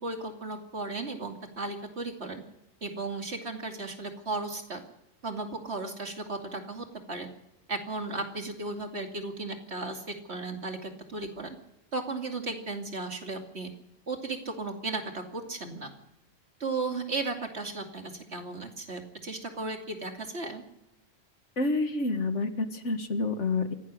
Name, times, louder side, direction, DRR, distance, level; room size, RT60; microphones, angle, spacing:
voice 1, 0.0-2.4 2.8-4.8 5.2-7.3 7.7-11.6 11.9-13.7 14.1-15.9 16.6-20.6, right 3 dB, 60° right, 4 dB, 2.9 m, -35 dB
voice 2, 21.6-23.7, left 3 dB, 75° left, 8 dB, 2.1 m, -28 dB
24.5 x 17.0 x 6.4 m, 0.87 s
omnidirectional pair, 1.2 m